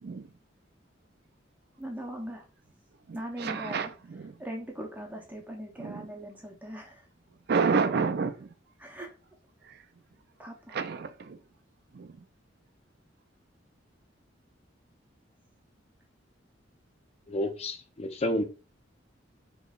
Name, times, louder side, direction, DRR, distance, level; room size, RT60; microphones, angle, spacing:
voice 1, 1.8-2.4 3.1-3.9 4.4-7.1 8.8-9.1 10.4-10.8, equal, 10° right, 0.7 m, -40 dB
voice 2, 3.1-4.3 5.8-6.1 7.5-8.5 9.6-9.8 10.7-11.4 11.9-12.1, right 5 dB, 55° right, 0.4 m, -30 dB
voice 3, 17.3-18.4, left 1 dB, 35° left, 0.5 m, -30 dB
3.8 x 3.0 x 2.4 m
head